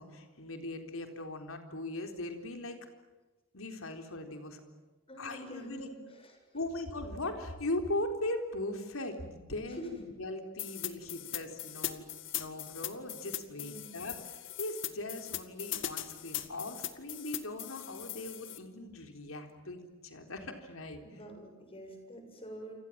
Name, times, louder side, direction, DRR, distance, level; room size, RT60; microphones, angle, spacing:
voice 1, 0.0-2.8 3.5-4.6 5.2-5.9 6.5-21.0, left 1 dB, 85° left, 5 dB, 4.0 m, -39 dB
voice 2, 5.1-6.3 9.7-9.9 13.6-13.9 21.0-22.7, right 1 dB, 30° left, 4 dB, 7.6 m, -47 dB
sound 1, 10.6-18.6, left 12 dB, 60° left, 2.1 m, -40 dB
29.5 x 26.0 x 7.6 m, 1.2 s
head